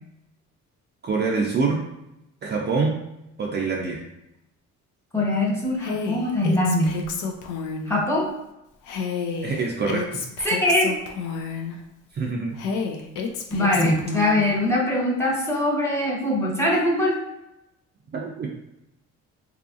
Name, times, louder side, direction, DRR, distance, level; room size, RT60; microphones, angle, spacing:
voice 1, 1.0-1.8 2.4-3.0 3.4-4.0 9.4-10.2 12.1-12.6 18.1-18.5, right 4 dB, 35° right, -2 dB, 0.4 m, -25 dB
voice 2, 5.1-7.0 7.9-8.3 10.4-11.0 13.5-17.2, left 1 dB, 10° left, -3 dB, 0.7 m, -22 dB
Female speech woman speaking, 5.8-7.9 8.9-11.8 12.6-14.5, left 5 dB, 80° left, 0.5 m, -30 dB
2.7 x 2.5 x 2.4 m, 0.88 s
cardioid pair, 90°, 30 cm